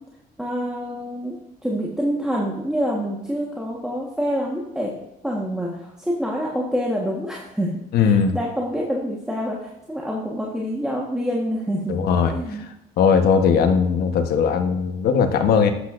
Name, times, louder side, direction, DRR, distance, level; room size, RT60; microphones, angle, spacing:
voice 1, 0.4-1.4 1.6-4.9 5.2-7.7 8.0-12.1 12.3-12.6, equal, 5° right, -3 dB, 1.3 m, -26 dB
voice 2, 7.9-8.3 11.9-12.3 13.0-15.7, left 6 dB, 65° left, 6 dB, 1.1 m, -18 dB
12.0 x 8.2 x 2.5 m, 0.91 s
cardioid pair, 110°, 17 cm